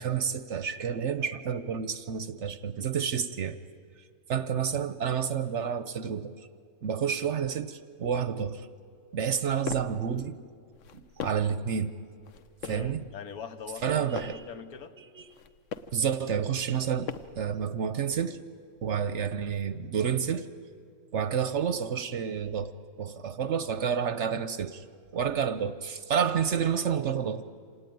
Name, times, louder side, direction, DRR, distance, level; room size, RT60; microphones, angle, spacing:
voice 1, 0.0-3.6 4.3-6.3 6.8-8.7 9.1-10.4 10.9-11.9 12.6-13.0 13.8-14.4 15.2-15.3 15.9-18.4 18.8-20.5 21.1-22.7 23.0-24.8 25.1-27.4, right 7 dB, 55° right, 13 dB, 0.9 m, -29 dB
sound 1, 9.2-10.0 10.7-11.6 12.2-12.9 13.6-14.5 15.2-16.0 16.7-17.5, left 7 dB, 60° left, 1.1 m, -41 dB
voice 2, 12.6-15.0, left 7 dB, 75° left, 10 dB, 1.5 m, -42 dB
26.5 x 18.0 x 9.3 m, 2.2 s
omnidirectional pair, 1.6 m